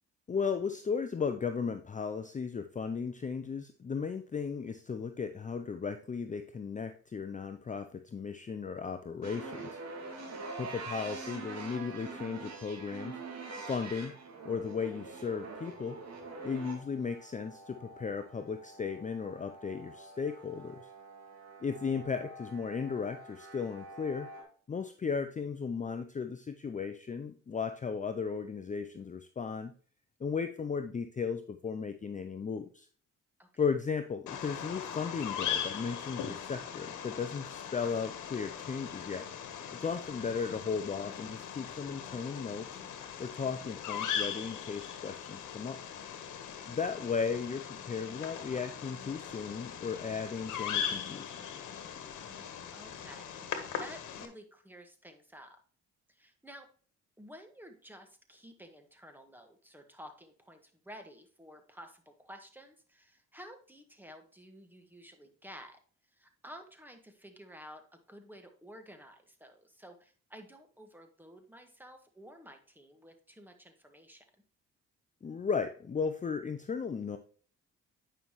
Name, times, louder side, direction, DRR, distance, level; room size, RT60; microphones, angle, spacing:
voice 1, 0.3-9.8 10.6-13.2 13.7-14.1 14.4-16.0 16.4-20.9 21.6-24.3 24.7-29.7 30.2-32.9 33.6-39.3 39.7-42.7 43.2-45.8 46.7-51.3 75.2-77.2, left 5 dB, 25° left, 8 dB, 0.6 m, -35 dB
sound 1, 9.2-24.4, right 3 dB, 55° right, 2.5 m, -45 dB
Bird vocalization bird call bird song, 34.3-54.3, left 8 dB, 80° left, 1.3 m, -40 dB
voice 2, 52.2-55.6 56.1-56.7 57.2-65.8 66.1-74.2, equal, 5° right, 5 dB, 1.6 m, -52 dB
9.1 x 5.6 x 3.1 m, 0.42 s
cardioid pair, 90°, 30 cm